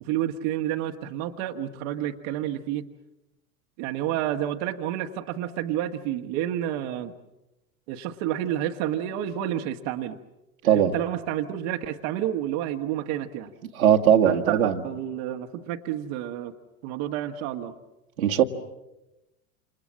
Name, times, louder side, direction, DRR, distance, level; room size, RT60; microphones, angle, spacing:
voice 1, 0.0-2.9 3.8-7.1 7.9-10.2 10.6-13.5 14.2-16.5 16.8-17.7, right 11 dB, 45° right, 5 dB, 1.5 m, -30 dB
voice 2, 10.6-11.0 13.7-14.8 18.2-18.4, right 9 dB, 70° right, 1 dB, 2.1 m, -19 dB
28.5 x 28.0 x 7.4 m, 0.97 s
figure-of-eight pair, 85°, 44 cm